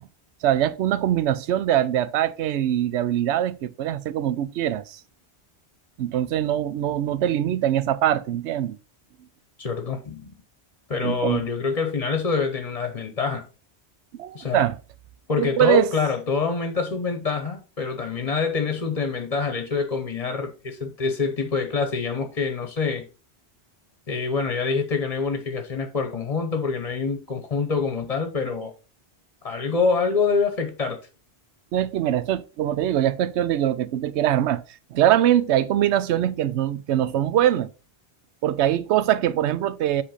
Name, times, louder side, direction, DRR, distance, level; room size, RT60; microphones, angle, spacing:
voice 1, 0.4-5.0 6.0-8.8 11.0-11.4 14.2-14.8 15.4-15.9 31.7-34.6 34.9-37.7 38.4-40.0, right 11 dB, 85° right, 0.9 m, -22 dB
voice 2, 9.6-10.3 10.9-13.5 14.3-14.7 15.3-23.1 24.1-28.7 29.4-31.0, left 5 dB, 40° left, 0.9 m, -26 dB
7.6 x 3.4 x 4.9 m
omnidirectional pair, 1.1 m